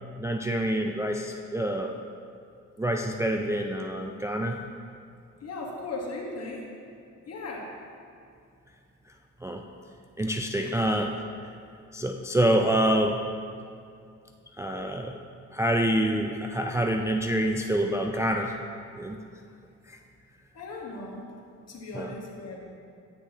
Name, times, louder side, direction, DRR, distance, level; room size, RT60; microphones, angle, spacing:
voice 1, 0.2-1.9 2.8-4.6 9.4-9.6 10.2-11.1 11.9-13.2 14.6-15.1 15.5-18.5 19.0-19.2 19.9-20.0 21.9-22.1, right 1 dB, 10° right, 2 dB, 0.3 m, -26 dB
voice 2, 5.4-6.6 7.3-7.7 10.6-10.8 19.2-19.3 20.5-21.2 21.7-22.6, left 2 dB, 50° left, -2 dB, 1.5 m, -37 dB
9.5 x 6.6 x 2.9 m, 2.3 s
cardioid pair, 80°, 32 cm